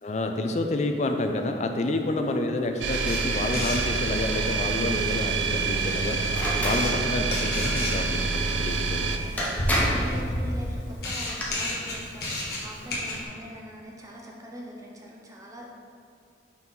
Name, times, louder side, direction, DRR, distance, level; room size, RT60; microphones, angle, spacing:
voice 1, 0.0-6.2 6.6-9.2, left 2 dB, 40° left, 5 dB, 0.4 m, -29 dB
voice 2, 1.8-2.2 9.2-15.7, equal, 20° right, -2 dB, 0.7 m, -43 dB
sound 1, 2.8-9.2, right 4 dB, 90° right, 0.5 m, -27 dB
Camera, 2.9-13.2, left 1 dB, 60° left, 1.3 m, -33 dB
sound 2, 6.3-6.8 8.9-9.0 9.4-10.1 11.1-11.4, equal, 10° left, 0.9 m, -27 dB
5.8 x 4.4 x 3.9 m, 2.4 s
head